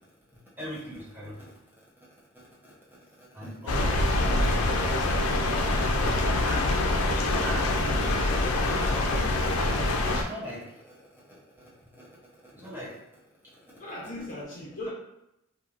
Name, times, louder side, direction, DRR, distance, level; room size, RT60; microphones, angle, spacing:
voice 1, 0.6-2.1 2.3-4.6 4.9-6.7 7.1-8.3 8.7-9.5 9.9-13.0 13.4-13.6, equal, 10° right, -7 dB, 0.5 m, -42 dB
sound 1, 3.7-10.2, left 2 dB, 85° left, 0.4 m, -25 dB
voice 2, 13.8-14.9, left 1 dB, 40° left, -5 dB, 0.8 m, -38 dB
2.9 x 2.2 x 2.4 m, 0.85 s
head